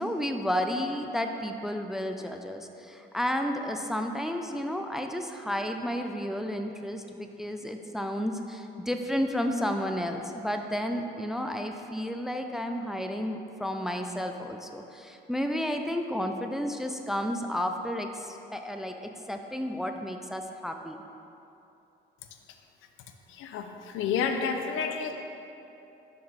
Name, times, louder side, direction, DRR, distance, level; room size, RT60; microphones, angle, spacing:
voice 1, 0.0-21.0, equal, ahead, 5 dB, 0.3 m, -32 dB
voice 2, 23.3-25.1, left 6 dB, 85° left, 5 dB, 0.5 m, -30 dB
6.6 x 3.8 x 4.2 m, 2.9 s
cardioid pair, 90°, 20 cm